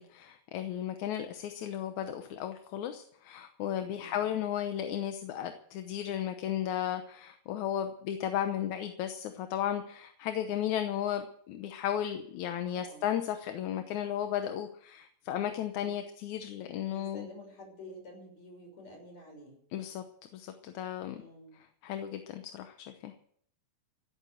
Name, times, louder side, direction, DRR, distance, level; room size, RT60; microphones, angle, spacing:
voice 1, 0.0-17.3 19.7-20.0 20.3-21.2 21.8-22.8 23.0-23.1, left 10 dB, 70° left, 7 dB, 2.2 m, -34 dB
voice 2, 4.0-4.3 12.7-13.1 16.8-19.6 21.2-21.6, left 1 dB, 55° left, 1 dB, 7.2 m, -50 dB
15.5 x 8.9 x 7.9 m, 0.64 s
omnidirectional pair, 3.6 m